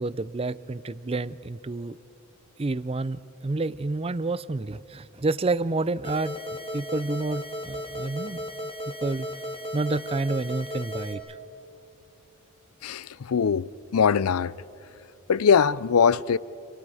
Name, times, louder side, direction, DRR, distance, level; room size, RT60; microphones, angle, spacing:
voice 1, 0.0-2.0 2.6-6.4 6.7-8.4 9.0-9.3 9.7-11.2, right 3 dB, 25° right, 0.5 m, -29 dB
sound 1, 6.0-11.1, equal, 25° left, 1.9 m, -35 dB
voice 2, 12.8-14.5 15.3-16.4, left 6 dB, 85° left, 0.5 m, -22 dB
29.5 x 28.5 x 4.9 m
head